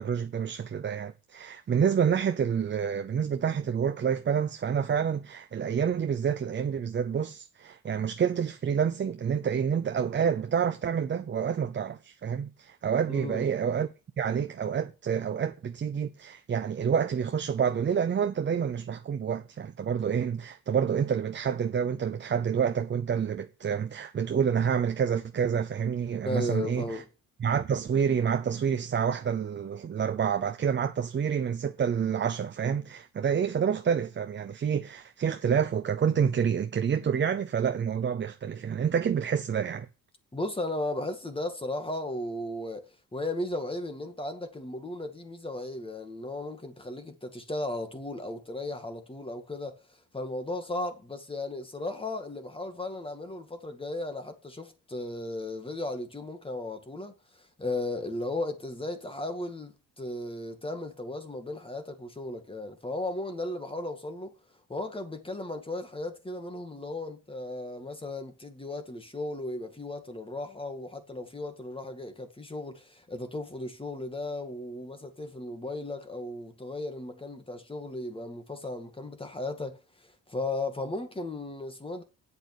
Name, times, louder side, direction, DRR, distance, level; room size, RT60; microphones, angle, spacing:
voice 1, 0.0-13.9 14.2-27.0 27.4-39.9, right 7 dB, 35° right, 0.7 m, -28 dB
voice 2, 13.1-13.5 26.2-27.1 40.3-64.3 64.7-82.0, left 2 dB, 15° left, 2.0 m, -36 dB
8.6 x 7.8 x 8.8 m
cardioid pair, 130°, 35 cm